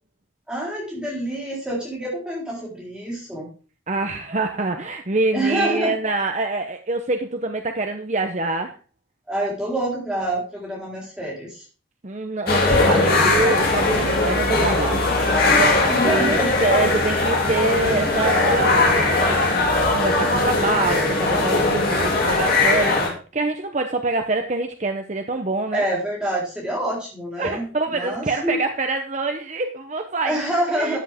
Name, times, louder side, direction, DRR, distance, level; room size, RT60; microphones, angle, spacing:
voice 1, 0.5-3.5 5.3-5.9 9.3-11.6 15.9-16.5 25.7-28.6 30.3-31.0, right 1 dB, 5° right, -5 dB, 3.8 m, -26 dB
voice 2, 3.9-8.8 12.0-15.1 16.0-25.9 27.4-31.0, right 2 dB, 35° right, 5 dB, 0.7 m, -25 dB
sound 1, 12.5-23.1, left 2 dB, 50° left, 2.8 m, -19 dB
13.0 x 7.9 x 3.5 m, 0.37 s
head